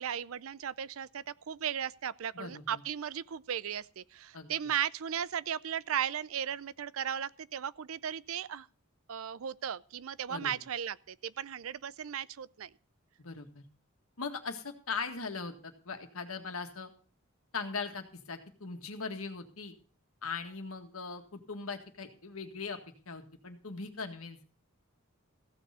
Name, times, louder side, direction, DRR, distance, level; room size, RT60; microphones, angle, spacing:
voice 1, 0.0-8.7 9.1-12.7, right 9 dB, 75° right, 0.5 m, -36 dB
voice 2, 2.3-2.8 4.3-4.5 10.3-10.5 13.2-13.6 14.2-16.9 17.5-19.7 20.2-22.8 23.1-24.6, left 4 dB, 85° left, 1.8 m, -40 dB
15.5 x 6.7 x 6.9 m
head